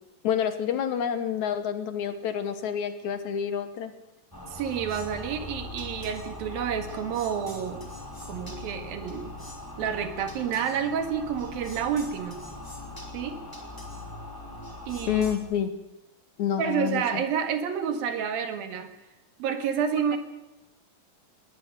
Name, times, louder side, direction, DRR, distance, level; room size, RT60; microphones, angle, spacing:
voice 1, 0.2-3.9 15.1-15.7 16.4-17.2 19.9-20.0, left 8 dB, 65° left, 10 dB, 2.2 m, -28 dB
sound 1, 4.3-15.4, left 1 dB, 5° left, 2.9 m, -40 dB
voice 2, 4.5-7.9 8.3-9.3 9.8-12.4 13.1-13.4 14.9-15.2 16.6-18.9 19.4-20.2, right 7 dB, 85° right, 8 dB, 3.6 m, -29 dB
20.0 x 19.5 x 6.6 m, 0.94 s
omnidirectional pair, 4.1 m